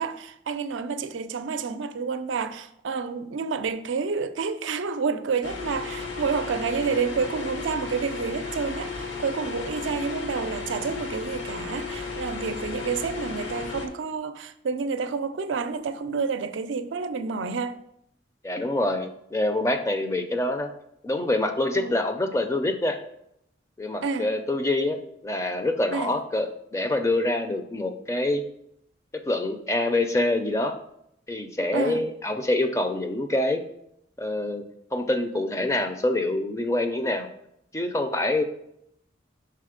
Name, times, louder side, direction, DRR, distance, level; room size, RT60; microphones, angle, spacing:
voice 1, 0.0-17.8 21.8-22.0 24.0-24.3 25.9-26.2 31.7-32.0, right 5 dB, 80° right, 0.4 m, -29 dB
sound 1, 5.4-13.9, left 4 dB, 75° left, 0.9 m, -34 dB
voice 2, 18.4-20.7 21.0-23.0 23.8-28.4 29.1-30.7 31.3-33.6 34.2-34.6 34.9-37.3 37.7-38.4, left 2 dB, 15° left, 0.4 m, -26 dB
5.7 x 4.0 x 5.0 m
head